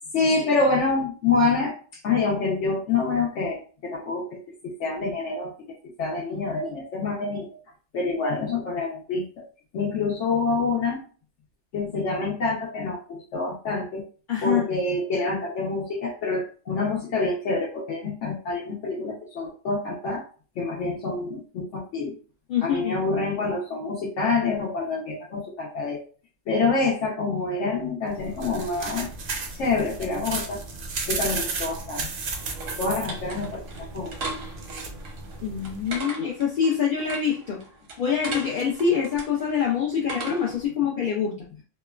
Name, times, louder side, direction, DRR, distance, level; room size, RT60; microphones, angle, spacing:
voice 1, 0.1-4.4 4.6-5.5 6.0-7.6 7.9-9.2 9.7-11.0 11.7-14.0 14.4-20.2 20.6-22.1 22.6-26.0 26.5-29.1 29.5-30.6 31.1-32.1 32.8-33.6 33.9-34.3, left 3 dB, 70° left, -2 dB, 0.9 m, -26 dB
voice 2, 14.3-14.7 22.5-23.1 35.4-37.6 38.0-41.3, left 7 dB, 55° left, -4 dB, 0.6 m, -25 dB
sound 1, 28.1-36.0, right 4 dB, 60° right, 0.6 m, -34 dB
sound 2, 31.8-40.7, right 3 dB, 90° right, 1.2 m, -39 dB
2.9 x 2.1 x 2.3 m, 0.39 s
omnidirectional pair, 1.3 m